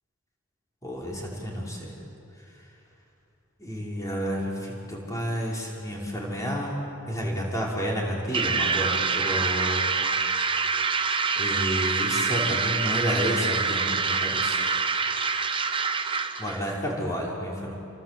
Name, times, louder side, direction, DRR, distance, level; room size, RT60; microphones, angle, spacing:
voice 1, 0.8-1.9 3.6-6.7 7.1-9.9 11.4-14.6 16.4-17.8, equal, 15° left, -3 dB, 5.2 m, -30 dB
sound 1, 8.3-16.6, right 5 dB, 25° right, 1.0 m, -26 dB
29.5 x 24.0 x 7.7 m, 2.8 s
head